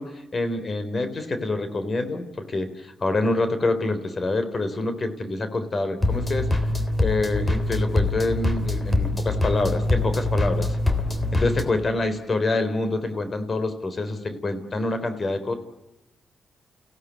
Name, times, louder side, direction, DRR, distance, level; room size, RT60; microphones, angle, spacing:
voice 1, 0.0-6.5 7.0-10.8 11.3-15.5, left 2 dB, 45° left, 10 dB, 3.9 m, -26 dB
sound 1, 6.0-11.6, left 2 dB, 25° left, 3.5 m, -24 dB
29.5 x 17.0 x 8.4 m, 0.99 s
cardioid pair, 60°, 0 cm